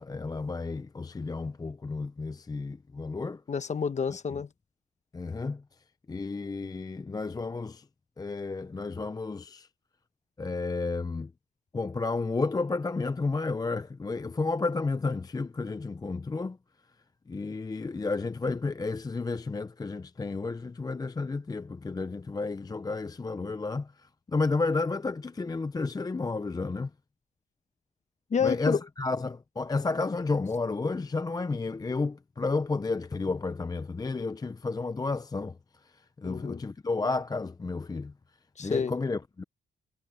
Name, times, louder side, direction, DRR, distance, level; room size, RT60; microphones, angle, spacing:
voice 1, 0.0-3.4 5.1-5.6 6.1-7.9 8.2-9.7 10.4-11.3 11.7-16.6 17.3-26.9 28.4-38.1 38.6-39.4, left 3 dB, 20° left, 0.6 m, -32 dB
voice 2, 3.5-4.5 28.3-28.8 36.2-36.6 38.6-38.9, left 6 dB, 35° left, 1.1 m, -29 dB
cardioid pair, 90°, 20 cm